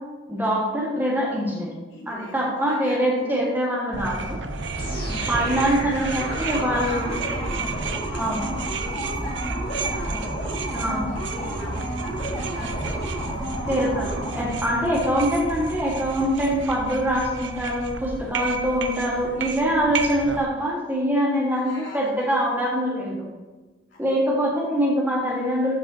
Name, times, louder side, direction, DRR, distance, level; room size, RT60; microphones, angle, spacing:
voice 1, 0.3-1.7 2.1-4.4 5.3-7.1 8.1-8.5 10.7-11.1 13.7-23.3 24.0-25.7, equal, 10° right, -4 dB, 1.7 m, -24 dB
voice 2, 1.9-3.4 4.7-5.4 6.0-7.7 8.1-10.3 10.7-13.8 14.8-15.0 21.5-22.1 23.9-24.0 24.5-24.7, left 1 dB, 65° left, -5 dB, 2.8 m, -42 dB
sound 1, 3.9-20.4, right 3 dB, 65° right, 0.7 m, -31 dB
sound 2, 4.8-14.6, equal, 50° left, 2.1 m, -32 dB
12.5 x 5.9 x 2.9 m, 1.2 s
head